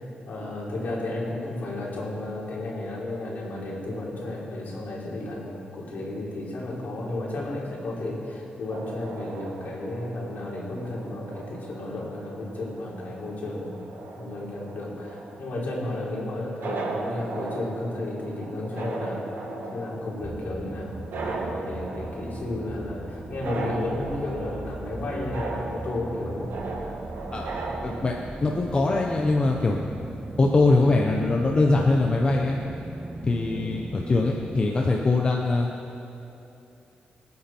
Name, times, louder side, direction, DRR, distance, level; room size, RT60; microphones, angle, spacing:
voice 1, 0.0-13.8 14.1-27.0 33.3-33.7, left 2 dB, 60° left, -5 dB, 4.3 m, -33 dB
sound 1, 8.7-28.1, right 3 dB, 80° right, 2.3 m, -38 dB
sound 2, 20.2-34.6, right 2 dB, 20° right, 0.5 m, -39 dB
voice 2, 27.8-28.1 28.4-29.8 30.4-32.6 33.2-35.7, left 3 dB, 30° left, 0 dB, 1.0 m, -22 dB
25.5 x 9.7 x 4.5 m, 2.7 s
wide cardioid pair, 130°, 3 cm